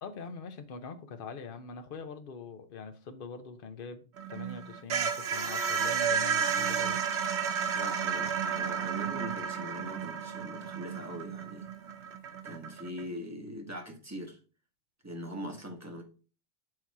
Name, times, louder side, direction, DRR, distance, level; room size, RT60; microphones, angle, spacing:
voice 1, 0.0-7.0, left 4 dB, 55° left, 0.9 m, -43 dB
sound 1, 4.2-13.0, right 7 dB, 85° right, 1.1 m, -32 dB
voice 2, 7.7-11.7 12.4-14.4 15.0-16.0, equal, 15° right, 1.2 m, -41 dB
7.7 x 2.9 x 4.6 m
omnidirectional pair, 1.1 m